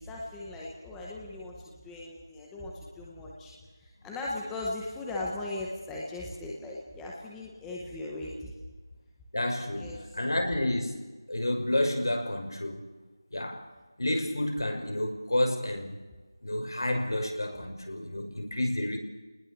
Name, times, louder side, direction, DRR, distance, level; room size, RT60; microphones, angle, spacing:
voice 1, 0.0-3.5 3.8-8.5 9.7-10.2, left 2 dB, 5° left, -4 dB, 0.9 m, -38 dB
voice 2, 9.3-12.8 13.3-13.6 14.0-16.0 16.4-19.0, left 1 dB, 70° left, 4 dB, 5.9 m, -30 dB
28.5 x 20.0 x 7.2 m, 1.3 s
figure-of-eight pair, 180°, 2 cm